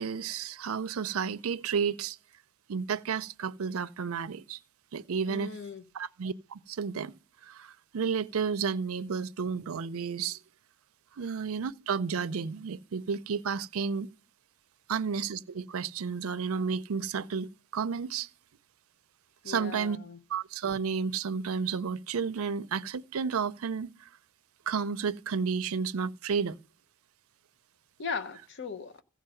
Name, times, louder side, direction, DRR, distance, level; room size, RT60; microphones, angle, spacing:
voice 1, 0.0-2.2 2.7-4.6 4.9-5.5 5.9-10.4 11.2-14.1 14.9-18.3 19.5-20.0 20.3-23.9 24.7-26.6, right 6 dB, 65° right, 0.5 m, -32 dB
voice 2, 5.3-5.8 19.4-20.2 28.0-29.0, left 5 dB, 55° left, 0.7 m, -38 dB
15.0 x 5.1 x 7.6 m
head